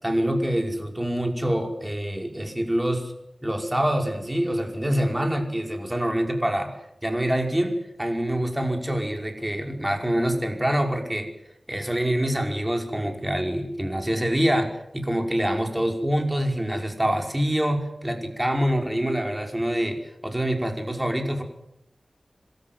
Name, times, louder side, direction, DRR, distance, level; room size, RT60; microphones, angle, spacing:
voice 1, 0.0-3.1 3.4-6.7 7.0-11.3 11.7-20.0 20.2-21.4, equal, 15° right, 3 dB, 5.4 m, -25 dB
26.5 x 13.5 x 9.4 m, 0.77 s
wide cardioid pair, 65°, 0 cm